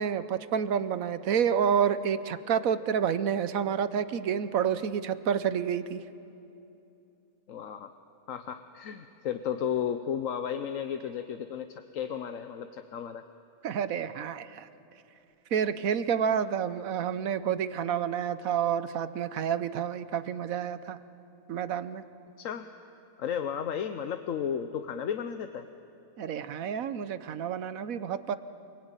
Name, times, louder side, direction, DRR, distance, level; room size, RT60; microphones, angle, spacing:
voice 1, 0.0-6.0 13.6-14.7 15.5-21.0 21.5-22.0 26.2-28.4, right 8 dB, 75° right, 13 dB, 1.2 m, -29 dB
voice 2, 7.5-7.9 8.3-11.7 11.9-13.2 22.4-22.7 23.2-25.7, left 8 dB, 70° left, 8 dB, 1.2 m, -33 dB
28.0 x 19.0 x 9.0 m, 2.8 s
omnidirectional pair, 1.5 m